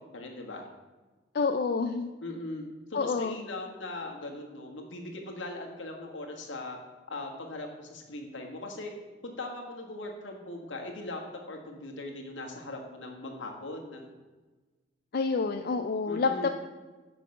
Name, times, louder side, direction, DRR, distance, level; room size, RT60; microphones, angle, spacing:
voice 1, 0.1-0.7 2.2-2.6 2.9-6.8 7.1-8.9 9.2-11.2 11.5-14.1 16.1-16.5, left 2 dB, 75° left, 1 dB, 1.5 m, -39 dB
voice 2, 1.3-2.1 2.9-3.4 15.1-16.5, left 4 dB, 50° left, 5 dB, 0.4 m, -28 dB
7.7 x 5.6 x 6.4 m, 1.3 s
head